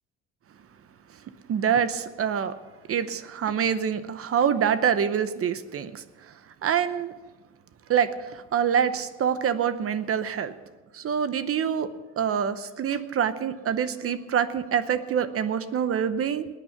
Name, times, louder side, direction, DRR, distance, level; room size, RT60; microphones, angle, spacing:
voice 1, 1.5-2.6 2.9-6.3 6.6-7.1 7.9-10.5 10.9-11.9 12.2-16.5, right 8 dB, 50° right, 13 dB, 0.8 m, -26 dB
20.0 x 9.2 x 6.0 m, 1.2 s
cardioid pair, 140°, 30 cm